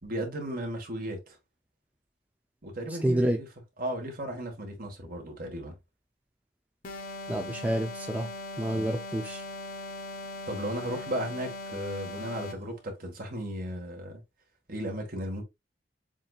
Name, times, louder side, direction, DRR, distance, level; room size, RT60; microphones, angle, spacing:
voice 1, 0.0-1.4 2.6-3.5 3.8-5.8 8.7-8.9 10.5-14.2 14.7-15.4, right 1 dB, 55° right, 1.7 m, -35 dB
voice 2, 3.0-3.4 7.3-8.3 8.6-9.4, right 1 dB, 10° right, 0.5 m, -28 dB
sound 1, 6.8-12.7, left 2 dB, 55° left, 0.9 m, -40 dB
7.1 x 2.7 x 2.4 m
head